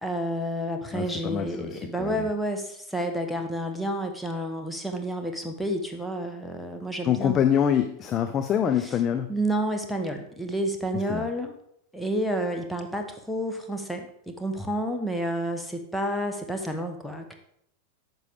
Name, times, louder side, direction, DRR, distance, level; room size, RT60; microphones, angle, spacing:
voice 1, 0.0-7.4 8.8-8.9 9.3-11.6 11.9-17.3, right 1 dB, 5° left, 4 dB, 0.9 m, -30 dB
voice 2, 0.9-2.3 7.0-9.3 11.1-11.3, left 9 dB, 30° left, 8 dB, 0.5 m, -25 dB
9.5 x 6.1 x 3.5 m, 0.72 s
figure-of-eight pair, 90°, 0 cm